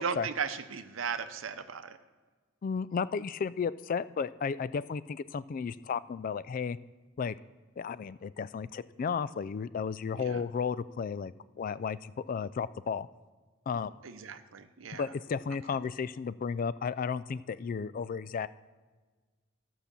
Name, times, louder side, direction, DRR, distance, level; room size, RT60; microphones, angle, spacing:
voice 1, 0.0-2.0 10.2-10.4 14.0-15.1, right 6 dB, 75° right, 11 dB, 0.7 m, -36 dB
voice 2, 2.6-6.8 7.2-7.3 7.8-11.3 11.6-13.1 13.7-13.9 14.9-18.5, left 6 dB, 45° left, 17 dB, 0.3 m, -33 dB
13.5 x 5.8 x 6.8 m, 1.4 s
head